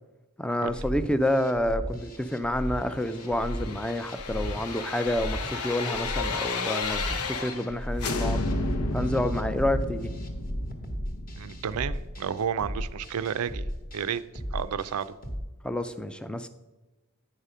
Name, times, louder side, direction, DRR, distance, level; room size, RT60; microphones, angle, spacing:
voice 1, 0.4-8.4 8.9-10.1 15.6-16.5, left 1 dB, 5° left, 11 dB, 0.3 m, -29 dB
sound 1, 0.7-15.4, equal, 40° left, 1.0 m, -36 dB
sound 2, 3.0-7.7 8.0-12.9 13.2-13.3, left 3 dB, 85° left, 0.8 m, -32 dB
voice 2, 11.4-13.7 13.9-14.2 14.5-15.2, right 8 dB, 80° right, 15 dB, 0.4 m, -31 dB
9.7 x 5.0 x 5.5 m, 1.1 s
head